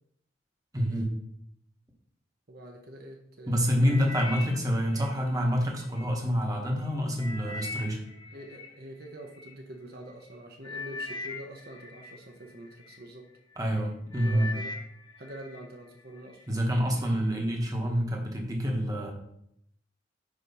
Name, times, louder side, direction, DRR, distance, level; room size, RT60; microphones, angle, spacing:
voice 1, 0.7-1.1 3.5-8.0 13.6-14.5 16.5-19.1, equal, 20° right, 1 dB, 1.1 m, -27 dB
voice 2, 2.5-4.5 8.3-13.3 14.1-14.7 15.2-16.5, right 1 dB, 55° right, 2 dB, 0.9 m, -45 dB
sound 1, 3.8-6.2 6.7-9.5 10.2-10.4 10.6-13.0 13.5-13.8 14.1-15.6 16.0-16.4 17.1-17.2, left 3 dB, 25° left, 0.7 m, -41 dB
8.3 x 3.0 x 5.4 m, 0.74 s
head